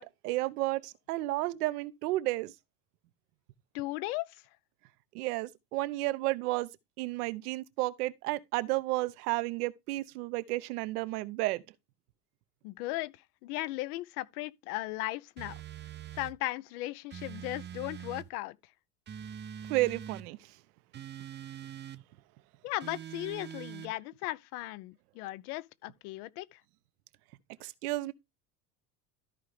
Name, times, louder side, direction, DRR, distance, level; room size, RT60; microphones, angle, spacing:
voice 1, 0.0-2.5 5.1-6.7 7.0-11.6 19.7-20.4 27.6-28.1, right 19 dB, 75° right, 0.9 m, -32 dB
voice 2, 3.7-4.4 12.6-15.6 16.1-18.6 22.6-26.6, left 18 dB, 70° left, 0.7 m, -37 dB
sound 1, 15.4-16.4 17.1-18.3 19.1-20.3 20.9-22.0 22.8-23.9, right 9 dB, 25° right, 0.5 m, -43 dB
13.5 x 4.8 x 3.3 m
hypercardioid pair, 80°, 46 cm